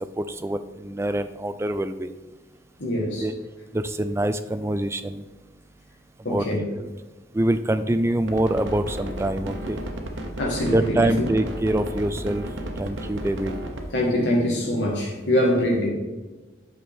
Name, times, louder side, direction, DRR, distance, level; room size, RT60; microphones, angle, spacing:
voice 1, 0.2-2.1 3.2-3.3 3.7-5.2 6.2-6.5 6.8-6.9 7.3-9.8 10.7-12.5 12.8-13.5, right 1 dB, 15° right, 10 dB, 0.3 m, -25 dB
voice 2, 2.8-3.2 6.2-6.6 10.4-11.2 13.9-15.9, left 1 dB, 70° left, -2 dB, 1.5 m, -23 dB
sound 1, 8.3-13.8, right 1 dB, 85° right, 1.0 m, -33 dB
8.4 x 6.3 x 3.5 m, 1.2 s
head